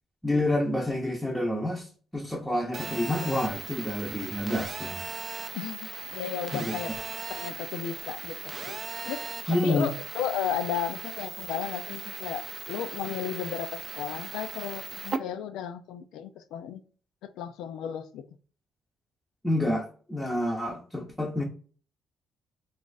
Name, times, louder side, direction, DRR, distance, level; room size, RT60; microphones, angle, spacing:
voice 1, 0.2-5.1 6.5-6.7 9.5-9.9 19.4-21.4, left 1 dB, 5° left, 0.6 m, -28 dB
Telephone, 2.7-15.2, right 5 dB, 40° right, 0.4 m, -38 dB
voice 2, 5.5-6.9 7.3-8.8 9.1-9.2 9.6-16.8 17.4-18.2, left 9 dB, 90° left, 0.3 m, -34 dB
2.4 x 2.4 x 3.9 m
cardioid pair, 90°, 0 cm